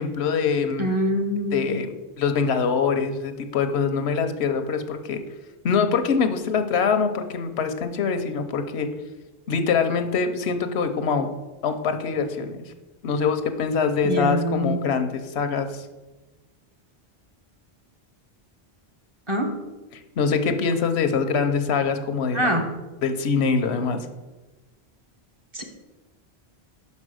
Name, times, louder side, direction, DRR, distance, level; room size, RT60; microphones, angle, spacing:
voice 1, 0.0-0.9 1.5-1.9 2.2-5.2 5.6-8.9 9.5-11.3 11.6-12.7 13.0-15.9 20.2-22.6 23.0-24.0, left 5 dB, 85° left, 8 dB, 1.0 m, -24 dB
voice 2, 0.8-1.7 14.0-14.8 19.3-19.5 22.3-22.7 25.5-25.6, equal, 30° right, 2 dB, 1.0 m, -24 dB
5.6 x 5.4 x 6.2 m, 1.1 s
omnidirectional pair, 1.1 m